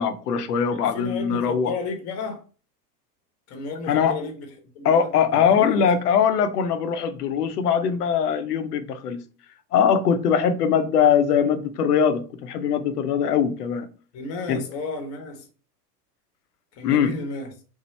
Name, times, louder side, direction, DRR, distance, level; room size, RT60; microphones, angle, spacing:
voice 1, 0.0-1.7 3.9-4.2 4.8-9.2 9.7-13.9 14.5-14.6 16.8-17.1, left 7 dB, 70° left, 0.6 m, -21 dB
voice 2, 0.7-2.4 3.5-5.8 14.1-15.5 16.7-17.5, left 3 dB, 30° left, 0.8 m, -33 dB
3.0 x 2.0 x 3.1 m
figure-of-eight pair, 85°, 49 cm